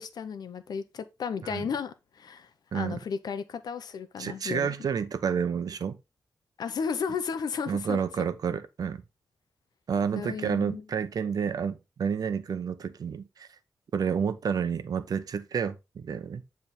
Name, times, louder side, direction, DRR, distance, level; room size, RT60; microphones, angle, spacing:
voice 1, 0.0-4.7 6.6-8.3 10.1-10.8, left 6 dB, 85° left, 0.8 m, -34 dB
voice 2, 4.2-6.0 7.7-9.0 9.9-13.5 13.9-16.4, right 7 dB, 70° right, 0.8 m, -30 dB
9.1 x 3.5 x 4.2 m
wide cardioid pair, 135°, 7 cm